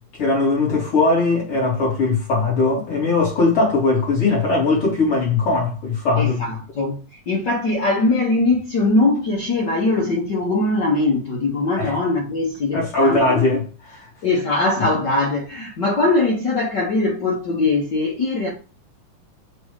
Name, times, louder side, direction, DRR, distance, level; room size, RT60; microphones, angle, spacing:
voice 1, 0.2-6.4 11.8-11.9 12.7-14.1, left 3 dB, 40° left, 3.0 m, -19 dB
voice 2, 6.2-7.0 7.3-13.4 14.2-18.5, left 2 dB, 80° left, 1.0 m, -21 dB
6.1 x 3.4 x 4.8 m
omnidirectional pair, 3.9 m